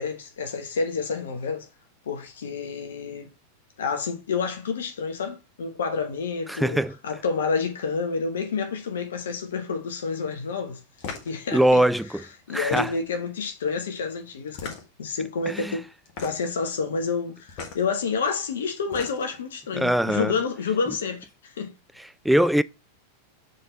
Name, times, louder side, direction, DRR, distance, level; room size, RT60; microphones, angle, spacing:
voice 1, 0.0-1.7 2.1-3.3 3.8-6.8 7.0-10.8 11.2-11.8 12.5-15.8 16.2-21.7, left 5 dB, 65° left, 1.1 m, -29 dB
voice 2, 6.5-7.0 11.5-12.2 12.5-12.9 15.5-15.8 19.7-20.3 22.0-22.6, right 1 dB, ahead, 0.3 m, -22 dB
sound 1, 11.0-11.3 12.5-13.2 14.5-15.1 16.1-16.5 17.5-17.8 18.7-19.4, left 5 dB, 45° left, 1.6 m, -37 dB
7.2 x 4.0 x 4.0 m
figure-of-eight pair, 90°, 0 cm